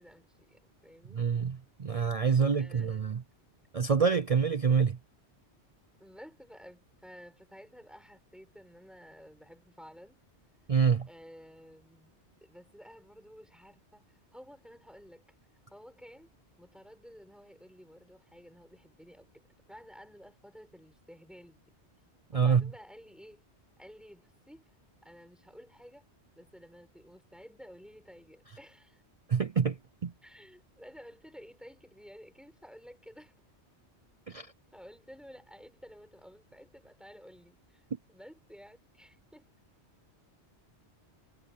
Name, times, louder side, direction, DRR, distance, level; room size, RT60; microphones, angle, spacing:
voice 1, 0.0-1.3 1.9-2.1 2.6-3.2 6.0-10.2 11.1-12.1 12.4-15.2 15.7-21.6 22.3-23.4 23.8-24.6 25.0-26.1 26.3-29.0 30.2-33.4 34.7-39.5, equal, ahead, 6.2 m, -53 dB
voice 2, 1.1-3.2 3.7-5.0 10.7-11.1 22.3-22.7 29.3-29.8 30.0-30.1 34.3-34.5, right 6 dB, 45° right, 0.5 m, -26 dB
omnidirectional pair, 1.2 m